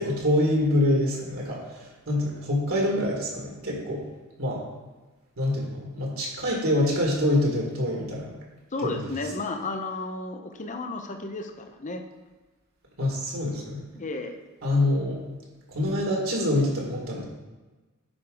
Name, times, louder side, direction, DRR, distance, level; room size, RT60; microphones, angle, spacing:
voice 1, 0.0-4.0 4.4-4.6 5.4-8.4 8.8-9.0 13.0-13.9 14.6-15.2 15.7-17.2, left 1 dB, 65° right, -2 dB, 1.9 m, -25 dB
voice 2, 8.7-12.0 13.9-14.4, left 3 dB, 35° left, 5 dB, 0.7 m, -33 dB
10.0 x 4.6 x 3.9 m, 1.2 s
head